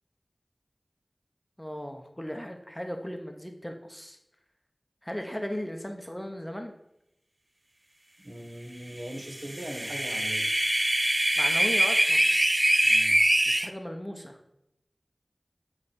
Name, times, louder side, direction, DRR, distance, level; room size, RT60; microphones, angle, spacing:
voice 1, 1.6-4.2 5.0-6.7 11.4-12.3 13.5-14.4, equal, 10° left, 4 dB, 0.8 m, -37 dB
voice 2, 8.2-10.5 12.8-13.2, right 1 dB, 55° right, 2 dB, 1.6 m, -40 dB
sound 1, 9.4-13.7, right 1 dB, 30° right, 0.4 m, -23 dB
8.5 x 4.9 x 4.3 m, 0.82 s
wide cardioid pair, 50°, 0 cm